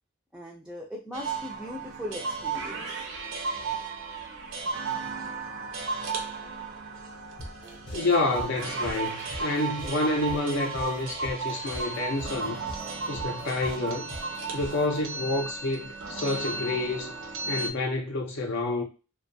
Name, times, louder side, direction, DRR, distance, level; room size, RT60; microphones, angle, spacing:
voice 1, 0.3-3.1, left 1 dB, 5° right, 0.3 m, -39 dB
sound 1, 1.1-17.7, right 4 dB, 70° right, 0.5 m, -34 dB
sound 2, 7.4-15.0, equal, 20° left, 0.7 m, -42 dB
voice 2, 7.9-12.6 13.1-14.1 14.5-17.1 17.5-18.8, left 2 dB, 65° left, 0.5 m, -29 dB
2.5 x 2.2 x 2.6 m
head